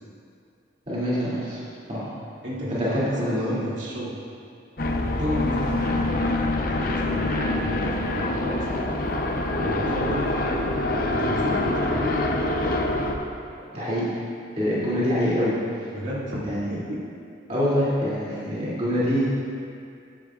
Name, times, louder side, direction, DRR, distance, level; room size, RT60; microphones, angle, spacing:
voice 1, 0.9-1.6 1.9-2.1 2.7-3.5 13.7-14.0 14.6-15.5 16.4-16.7 17.5-19.2, equal, 35° right, -9 dB, 2.7 m, -25 dB
voice 2, 2.4-4.1 5.0-8.9 9.6-10.7 11.1-12.7 15.9-17.0 18.3-18.5, equal, 85° right, -6 dB, 2.5 m, -32 dB
sound 1, 4.8-13.1, left 2 dB, 50° left, 0.7 m, -25 dB
14.0 x 10.5 x 2.5 m, 2.4 s
head